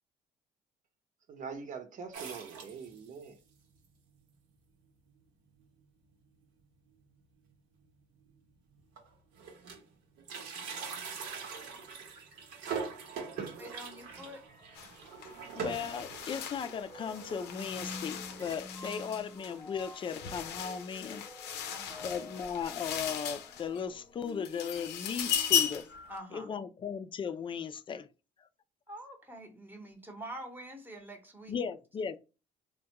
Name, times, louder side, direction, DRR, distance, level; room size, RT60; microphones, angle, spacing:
voice 1, 1.3-3.4, right 5 dB, 50° right, 0.8 m, -43 dB
sound 1, 2.1-3.3 3.8-3.9 4.1-4.2 5.1-5.2 5.6-5.8 6.1-6.2 7.5-7.6 8.3-8.4 8.7-9.9 10.2-18.6, right 5 dB, 85° right, 1.0 m, -43 dB
voice 2, 13.6-14.4 21.7-22.2 26.1-26.7 28.9-31.5, right 1 dB, 10° right, 0.8 m, -46 dB
sound 2, 14.5-26.2, left 1 dB, 15° left, 0.9 m, -50 dB
sound 3, 14.8-14.9 15.2-23.9 24.3-26.0, left 9 dB, 80° left, 0.6 m, -37 dB
voice 3, 15.5-21.5 22.0-25.9 26.3-28.1 28.4-28.5 31.5-32.2, left 6 dB, 30° left, 0.4 m, -37 dB
3.4 x 2.2 x 2.8 m
cardioid pair, 110°, 17 cm